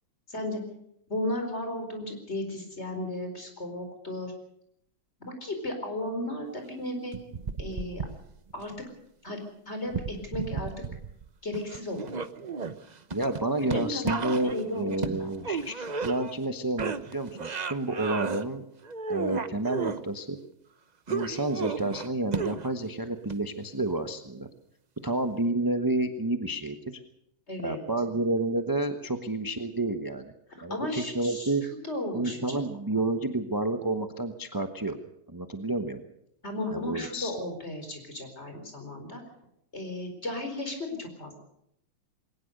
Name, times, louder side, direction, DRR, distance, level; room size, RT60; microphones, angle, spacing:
voice 1, 0.3-0.6 1.1-4.3 5.2-7.1 7.6-8.1 8.5-8.7 9.2-9.4 9.7-10.7 11.4-12.2 13.7-15.3 27.5-27.8 30.7-31.5 31.8-32.7 32.9-33.0 36.4-39.2 39.7-41.4, left 1 dB, 30° left, 5 dB, 4.9 m, -35 dB
sound 1, 7.1-8.6 9.9-11.3 11.5-16.5 16.8-18.4 18.8-20.0 21.1-22.8 23.3-23.4, right 5 dB, 65° right, 0.4 m, -34 dB
voice 2, 13.1-18.6 19.1-20.4 21.1-24.5 25.0-27.0 27.6-30.3 30.6-31.6 32.1-35.0 35.3-36.0 36.7-37.3, right 2 dB, 15° right, 7 dB, 0.8 m, -30 dB
21.0 x 19.0 x 6.7 m, 0.75 s
omnidirectional pair, 2.2 m